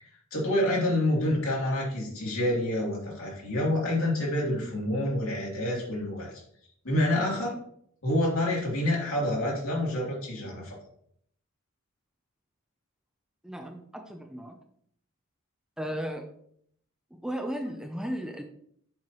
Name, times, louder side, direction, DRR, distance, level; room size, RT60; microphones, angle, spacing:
voice 1, 0.3-6.3 6.8-7.6 8.0-10.7, left 1 dB, 75° left, -3 dB, 3.0 m, -27 dB
voice 2, 13.4-14.6 15.8-16.3 17.1-18.4, equal, 5° right, 4 dB, 0.5 m, -35 dB
7.5 x 5.8 x 3.0 m, 0.67 s
head